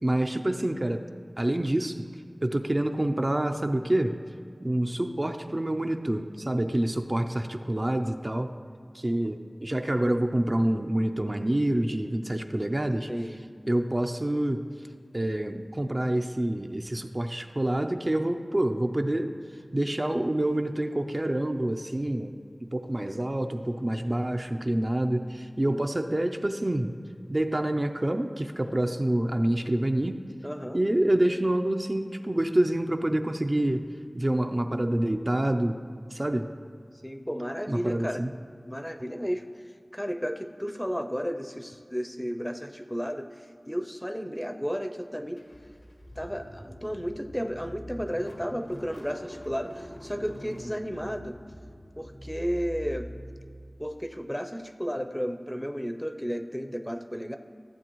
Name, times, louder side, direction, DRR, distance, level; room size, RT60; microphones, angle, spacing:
voice 1, 0.0-1.1 1.4-2.0 2.4-4.2 4.6-8.5 8.9-13.1 13.7-14.6 15.1-19.3 19.7-22.4 22.7-26.9 27.3-30.2 30.7-33.9 34.1-35.8 36.1-36.5 37.7-38.3, right 1 dB, 40° right, 5 dB, 0.4 m, -27 dB
voice 2, 13.1-13.4 25.6-25.8 30.4-30.8 37.0-38.2 38.7-39.5 39.9-45.4 46.2-51.4 52.0-53.1 53.8-57.4, equal, 10° left, 6 dB, 0.6 m, -33 dB
Car / Engine starting, 45.4-54.1, equal, 70° left, 1.2 m, -44 dB
14.5 x 8.0 x 3.0 m, 2.1 s
wide cardioid pair, 45°, 0 cm